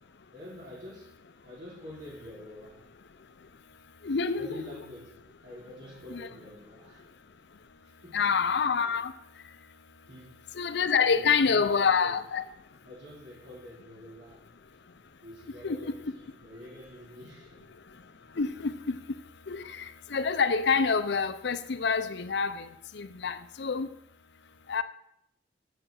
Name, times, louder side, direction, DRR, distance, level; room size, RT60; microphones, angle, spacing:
voice 1, 0.0-3.0 4.3-7.1 7.8-8.2 10.1-10.4 10.9-12.2 12.8-14.4 15.2-17.7, equal, 65° right, 5.0 m, -47 dB
voice 2, 4.0-4.5 6.1-6.3 8.1-9.1 10.6-12.4 15.6-15.9 18.4-19.0 19.5-19.8 20.1-22.7 22.9-23.9 24.7-24.8, left 5 dB, 65° left, 0.6 m, -27 dB
7.8 x 7.0 x 7.3 m
head